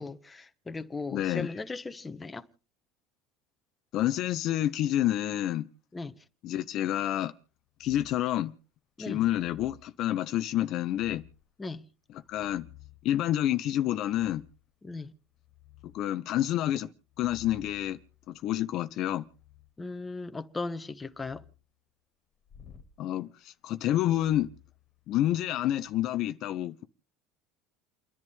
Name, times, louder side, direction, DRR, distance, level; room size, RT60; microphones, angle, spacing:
voice 1, 0.0-2.5 5.9-6.2 9.0-9.2 11.6-11.8 14.8-15.1 19.8-21.4, left 3 dB, 15° left, 1.1 m, -37 dB
voice 2, 1.1-1.5 3.9-5.7 6.4-7.3 7.8-8.5 9.0-11.2 12.3-12.7 13.0-14.4 15.8-16.9 17.2-18.0 18.3-19.2 23.0-24.5 25.1-26.8, left 13 dB, 55° left, 0.7 m, -28 dB
sound 1, 7.8-8.3 9.1-9.9 10.8-11.5 12.1-13.2 14.1-14.7 15.1-16.0 17.0-19.7 21.1-21.6 22.5-22.9 24.1-25.3 25.8-26.0, left 12 dB, 40° left, 2.1 m, -55 dB
29.5 x 11.0 x 3.6 m
supercardioid pair, 120°, 0 cm